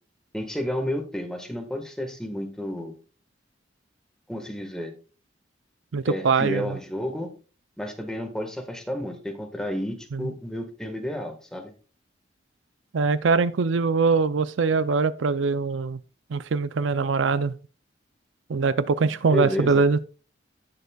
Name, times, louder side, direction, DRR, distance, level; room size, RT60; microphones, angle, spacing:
voice 1, 0.3-2.9 4.3-4.9 6.1-7.3 7.8-11.7 19.3-19.8, equal, 5° left, 1.5 m, -31 dB
voice 2, 5.9-6.8 10.1-10.3 12.9-16.0 16.3-17.5 18.5-20.0, right 4 dB, 75° right, 0.5 m, -22 dB
17.0 x 6.6 x 2.3 m
head